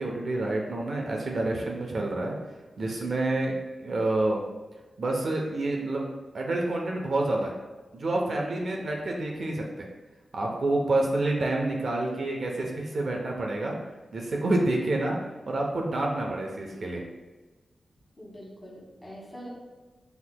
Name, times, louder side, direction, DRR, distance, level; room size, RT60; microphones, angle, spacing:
voice 1, 0.0-2.4 2.8-4.4 5.0-6.0 6.3-7.5 7.9-9.9 10.3-13.8 14.1-15.2 15.5-17.0, right 2 dB, 55° right, 0 dB, 0.7 m, -28 dB
voice 2, 18.2-19.5, equal, 10° left, -4 dB, 1.5 m, -44 dB
8.0 x 2.8 x 2.2 m, 1.2 s
wide cardioid pair, 135°, 0 cm